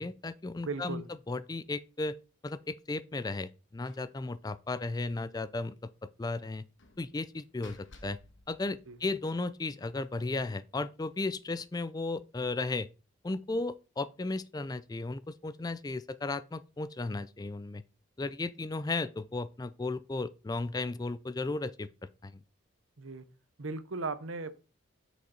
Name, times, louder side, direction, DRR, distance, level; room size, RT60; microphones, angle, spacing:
voice 1, 0.0-2.2 2.4-5.9 6.2-6.6 7.0-8.2 8.5-12.9 13.2-17.8 18.2-22.4, left 3 dB, 20° left, 0.4 m, -35 dB
voice 2, 0.6-1.1 8.9-9.0 23.0-23.2 23.6-24.5, right 3 dB, 80° right, 0.9 m, -37 dB
Slam, 3.9-4.2 4.5-4.6 4.9-5.0 6.8-9.4, left 2 dB, 70° left, 1.4 m, -57 dB
7.8 x 6.4 x 4.3 m
head